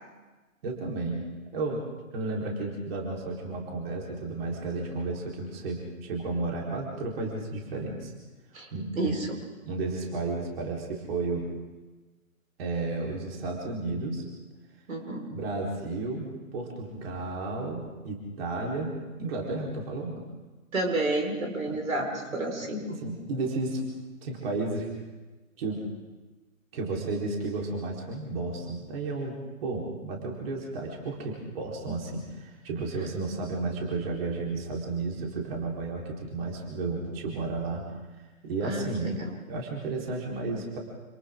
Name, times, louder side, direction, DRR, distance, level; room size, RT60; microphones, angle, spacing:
voice 1, 0.6-1.2 1.5-1.8 2.1-8.1 8.7-9.1 9.7-11.5 12.6-14.2 15.3-18.9 19.2-20.2 21.6-21.8 22.6-23.9 24.2-24.9 25.6-25.8 26.7-37.8 38.2-39.1 39.5-40.8, right 3 dB, 45° right, -2 dB, 4.1 m, -33 dB
voice 2, 9.0-9.3 14.9-15.3 20.7-22.8 38.6-39.3, right 2 dB, 70° right, 2 dB, 5.2 m, -30 dB
28.0 x 27.5 x 3.8 m, 1.2 s
figure-of-eight pair, 130°, 42 cm